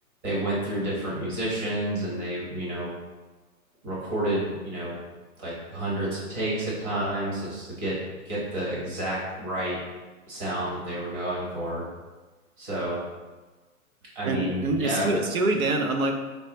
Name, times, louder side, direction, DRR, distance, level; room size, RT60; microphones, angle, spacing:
voice 1, 0.2-2.9 3.8-5.0 5.4-8.0 8.2-9.8 10.3-11.8 12.6-13.1 14.1-15.1, right 1 dB, 20° right, -6 dB, 1.1 m, -30 dB
voice 2, 14.2-16.1, right 2 dB, 65° right, 4 dB, 0.7 m, -25 dB
4.0 x 3.3 x 2.9 m, 1.3 s
hypercardioid pair, 145°, 45 cm